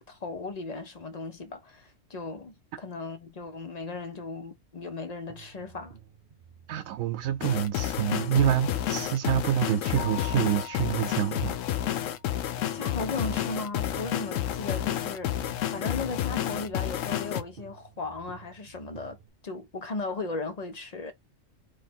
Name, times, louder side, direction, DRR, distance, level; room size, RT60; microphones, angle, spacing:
voice 1, 0.0-6.0 12.7-15.4 15.7-19.2 19.4-21.1, left 3 dB, 40° left, 0.6 m, -36 dB
sound 1, 5.3-19.3, right 8 dB, 50° right, 0.8 m, -51 dB
voice 2, 6.7-11.6 11.9-12.0, right 11 dB, 85° right, 1.0 m, -27 dB
sound 2, 7.4-17.4, left 11 dB, 75° left, 1.0 m, -30 dB
Keyboard (musical), 9.9-12.4, left 6 dB, 15° left, 0.9 m, -43 dB
3.3 x 3.3 x 4.3 m
omnidirectional pair, 1.4 m